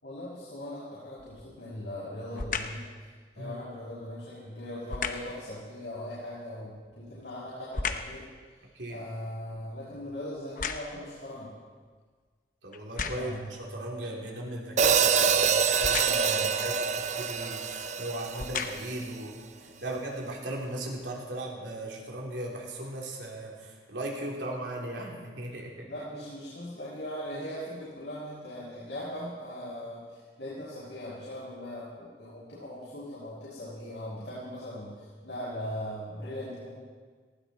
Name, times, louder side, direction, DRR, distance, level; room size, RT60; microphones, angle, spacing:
voice 1, 0.0-2.8 3.3-8.2 8.9-11.5 13.1-13.5 16.0-16.6 19.6-19.9 25.9-36.7, left 1 dB, 80° left, -10 dB, 5.8 m, -39 dB
sound 1, 1.2-1.6 2.3-2.9 4.9-5.4 6.8-8.2 8.7-11.2 11.8-11.9 12.7-13.5 15.8-16.4 17.4-17.5 18.2-19.0 19.7-19.8, left 5 dB, 45° left, 0.9 m, -35 dB
voice 2, 12.6-19.4 19.8-25.9, right 1 dB, 80° right, -1 dB, 3.2 m, -37 dB
Hi-hat, 14.8-18.9, right 6 dB, 40° right, 0.6 m, -26 dB
19.0 x 16.5 x 4.3 m, 1.5 s
head